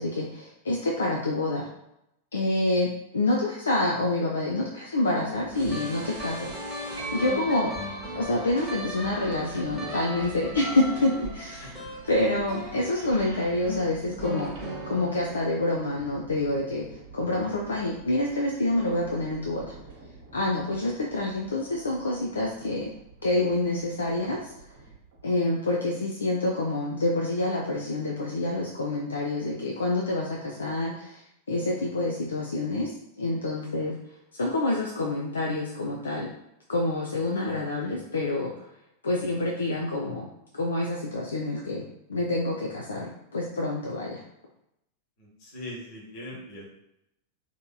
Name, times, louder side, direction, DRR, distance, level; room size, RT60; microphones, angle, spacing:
voice 1, 0.0-1.7 2.3-6.5 7.1-7.7 8.1-11.7 12.1-16.9 17.1-19.7 20.3-22.9 23.2-24.4 25.2-31.2 31.5-32.9 33.2-33.9 34.3-36.3 36.7-38.5 39.0-40.3 40.5-44.2, left 2 dB, 70° left, -1 dB, 0.3 m, -27 dB
sound 1, 5.2-15.4, equal, 15° right, 0.9 m, -38 dB
sound 2, 5.5-25.3, right 3 dB, 60° right, 0.7 m, -47 dB
sound 3, 7.0-10.7, right 2 dB, 90° right, 1.1 m, -43 dB
voice 2, 11.6-12.0 45.2-46.6, left 1 dB, 45° left, -3 dB, 1.0 m, -41 dB
2.8 x 2.5 x 2.2 m, 0.81 s
figure-of-eight pair, 90°, 0 cm